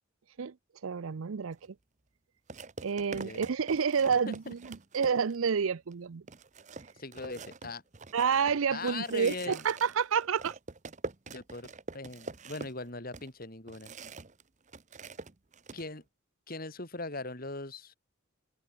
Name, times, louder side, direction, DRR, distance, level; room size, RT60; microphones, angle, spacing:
voice 1, 0.8-1.6 2.8-4.6 4.9-6.2 8.1-10.5, right 6 dB, 80° right, 0.5 m, -29 dB
sound 1, 1.5-1.7 2.5-5.5 5.9-6.0 6.3-14.4 14.7-15.8, right 3 dB, 35° right, 1.0 m, -45 dB
voice 2, 3.1-3.5 4.3-4.4 7.0-7.8 8.7-9.6 11.3-11.7 11.9-13.9 15.7-16.0 16.5-17.9, left 3 dB, 45° left, 3.0 m, -40 dB
head